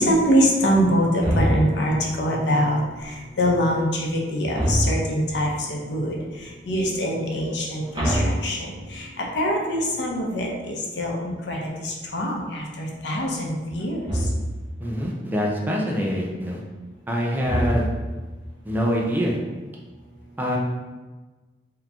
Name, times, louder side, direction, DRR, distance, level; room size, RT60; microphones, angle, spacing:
voice 1, 0.0-6.2 6.7-14.0, equal, 85° left, -1 dB, 0.7 m, -24 dB
sound 1, 1.2-2.0 4.5-5.3 7.9-9.1 14.1-14.7 17.4-18.3, equal, 25° right, 0.9 m, -25 dB
voice 2, 14.8-16.6 17.1-17.9 18.6-19.4 20.4-20.6, equal, 10° right, -3 dB, 0.6 m, -25 dB
3.6 x 2.9 x 3.5 m, 1.3 s
head